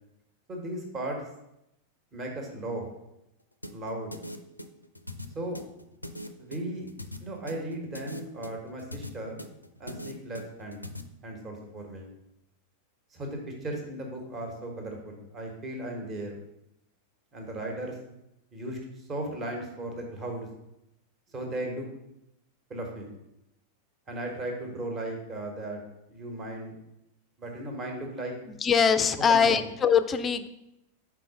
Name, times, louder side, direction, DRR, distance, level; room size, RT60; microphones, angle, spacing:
voice 1, 0.5-1.2 2.1-2.9 3.7-4.1 5.3-5.6 6.4-6.9 7.2-9.4 9.8-10.8 11.2-12.1 13.1-16.4 17.3-18.0 18.5-20.5 21.3-21.9 22.7-23.1 24.1-25.8 26.1-26.8 27.4-28.4 29.3-29.6, right 1 dB, 25° right, 2 dB, 1.2 m, -36 dB
sound 1, 3.6-11.0, left 1 dB, 85° left, 0.4 m, -41 dB
voice 2, 28.5-30.5, left 7 dB, 20° left, 11 dB, 0.4 m, -23 dB
4.7 x 4.2 x 5.4 m, 0.86 s
figure-of-eight pair, 90°, 0 cm